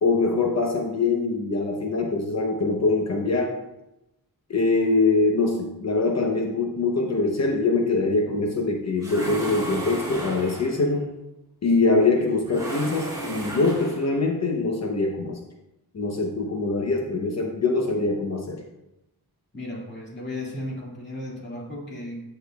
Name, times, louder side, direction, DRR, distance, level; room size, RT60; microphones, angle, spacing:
voice 1, 0.0-3.5 4.5-11.1 11.6-15.4 15.9-18.6, left 3 dB, 45° left, 2 dB, 0.8 m, -23 dB
sound 1, 9.0-10.9 12.4-14.2, right 1 dB, 10° right, 1.8 m, -33 dB
voice 2, 19.5-22.2, left 1 dB, 30° left, -3 dB, 2.0 m, -35 dB
10.0 x 6.5 x 2.3 m, 0.91 s
wide cardioid pair, 140°, 37 cm